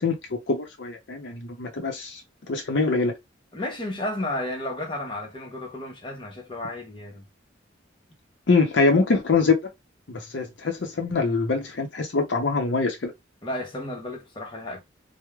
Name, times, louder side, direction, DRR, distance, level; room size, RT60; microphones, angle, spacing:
voice 1, 0.0-2.2 2.5-3.1 8.5-9.6 10.1-13.1, left 4 dB, 70° left, 0.6 m, -24 dB
voice 2, 3.5-7.2 13.4-14.8, left 1 dB, 25° left, 0.8 m, -32 dB
3.0 x 2.1 x 2.3 m
head